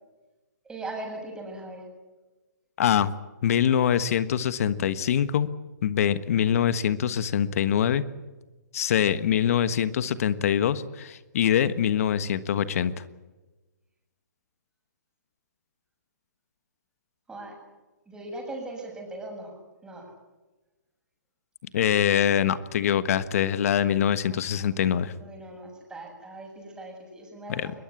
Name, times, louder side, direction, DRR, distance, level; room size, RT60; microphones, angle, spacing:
voice 1, 0.6-1.8 17.3-17.6 18.1-19.5 19.8-20.1 24.2-24.7 25.2-27.7, right 2 dB, 10° right, 1 dB, 7.5 m, -39 dB
voice 2, 2.8-3.1 3.4-5.5 5.8-8.0 8.7-12.9 21.7-25.1 27.5-27.7, left 9 dB, 50° left, 14 dB, 1.4 m, -24 dB
22.0 x 20.5 x 8.5 m, 1.2 s
hypercardioid pair, 140°, 10 cm